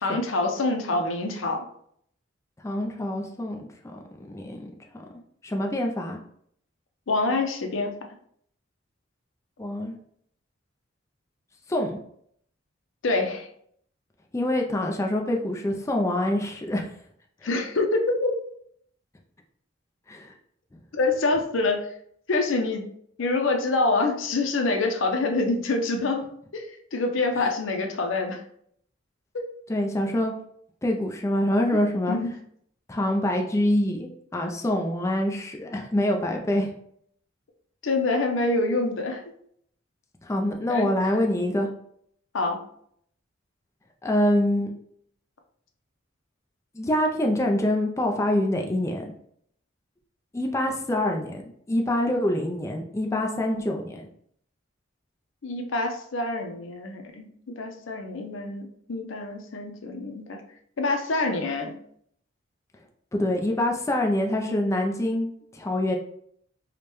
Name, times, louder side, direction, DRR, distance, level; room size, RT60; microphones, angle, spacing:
voice 1, 0.0-1.6 7.1-8.0 13.0-13.5 17.4-18.3 20.9-21.8 22.3-22.9 23.2-26.3 26.5-28.4 29.3-29.4 31.7-31.8 32.1-32.3 37.8-39.2 40.7-41.2 42.3-42.6 55.4-60.4 60.8-61.7, left 3 dB, 85° left, 3 dB, 0.6 m, -26 dB
voice 2, 2.6-4.7 5.4-6.2 9.6-10.0 11.7-12.0 14.3-16.9 20.1-20.3 20.7-20.8 27.4-27.5 29.7-30.3 30.8-32.2 32.9-36.7 40.2-41.7 44.0-44.7 46.7-49.1 50.3-51.4 51.7-54.1 63.1-65.9, left 1 dB, 15° left, 1 dB, 0.4 m, -25 dB
4.9 x 2.2 x 3.0 m, 0.67 s
head